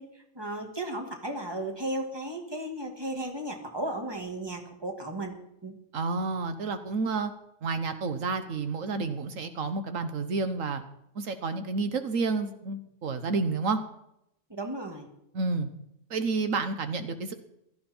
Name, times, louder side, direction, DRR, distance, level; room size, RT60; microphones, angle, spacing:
voice 1, 0.0-5.7 14.5-15.1, right 1 dB, 20° right, 3 dB, 2.1 m, -35 dB
voice 2, 5.9-7.3 7.6-10.8 11.1-13.8 15.3-15.7 16.1-17.3, right 4 dB, 80° right, 9 dB, 1.4 m, -30 dB
16.5 x 13.5 x 4.4 m, 0.79 s
omnidirectional pair, 1.4 m